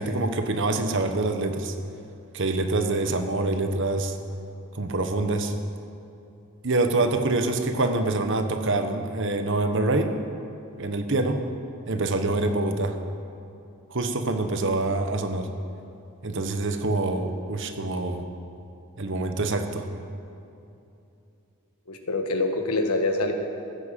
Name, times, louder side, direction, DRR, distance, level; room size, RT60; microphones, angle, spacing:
voice 1, 0.0-1.7 2.3-4.2 4.7-5.5 6.6-10.2 10.7-11.4 11.9-13.0 13.9-15.5 16.2-18.2 19.0-19.9, right 2 dB, 55° right, 7 dB, 1.1 m, -25 dB
voice 2, 21.9-23.3, left 2 dB, 85° left, 5 dB, 1.5 m, -25 dB
15.0 x 10.0 x 7.5 m, 2.7 s
head